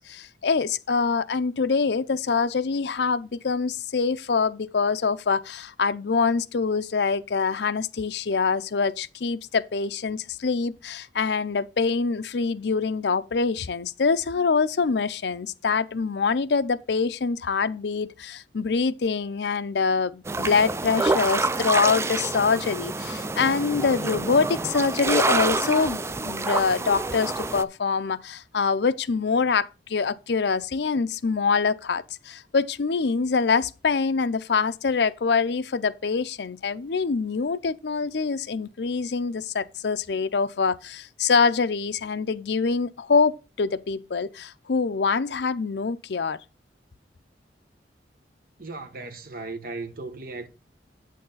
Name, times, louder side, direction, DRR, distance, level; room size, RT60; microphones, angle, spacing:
voice 1, 0.1-46.4, left 5 dB, 65° left, 0.5 m, -25 dB
sound 1, 20.3-27.6, right 3 dB, 15° right, 0.4 m, -27 dB
voice 2, 48.6-50.5, right 3 dB, 55° right, 1.3 m, -36 dB
8.5 x 6.5 x 3.9 m
head